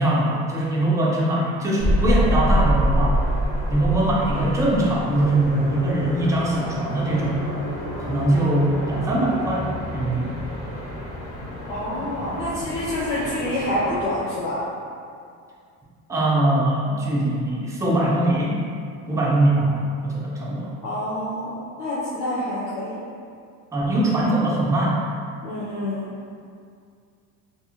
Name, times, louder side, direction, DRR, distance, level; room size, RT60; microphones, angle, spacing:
voice 1, 0.0-3.2 3.7-7.6 8.0-10.3 16.1-18.6 19.0-20.8 23.7-25.0, right 1 dB, 10° right, -5 dB, 0.5 m, -22 dB
sound 1, 1.8-14.0, equal, 50° left, 1.1 m, -27 dB
voice 2, 11.7-14.6 20.8-23.0 25.4-26.1, left 1 dB, 90° left, -11 dB, 0.8 m, -27 dB
2.5 x 2.3 x 2.9 m, 2.3 s
cardioid pair, 105°, 36 cm